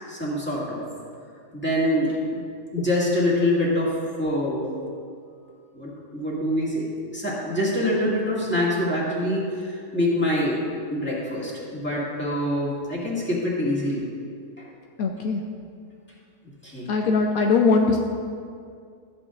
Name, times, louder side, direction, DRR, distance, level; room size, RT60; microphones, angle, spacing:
voice 1, 0.1-0.8 1.5-2.2 2.7-4.8 5.7-10.6 10.9-14.0 14.6-14.7 16.6-16.9, left 1 dB, 5° left, -7 dB, 1.9 m, -25 dB
voice 2, 15.0-15.4 16.9-18.0, left 4 dB, 75° left, 2 dB, 1.0 m, -20 dB
13.0 x 8.6 x 2.5 m, 2.3 s
omnidirectional pair, 1.6 m